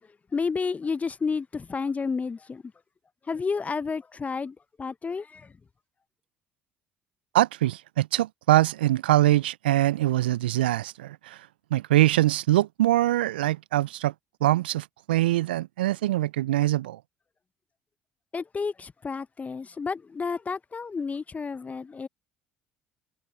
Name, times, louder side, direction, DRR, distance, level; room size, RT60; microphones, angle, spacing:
voice 1, 0.3-2.6 3.3-5.5 18.3-22.1, left 5 dB, 30° left, 0.9 m, -31 dB
voice 2, 7.3-14.1 14.4-17.0, right 15 dB, 80° right, 0.4 m, -23 dB
hypercardioid pair, 55°, 5 cm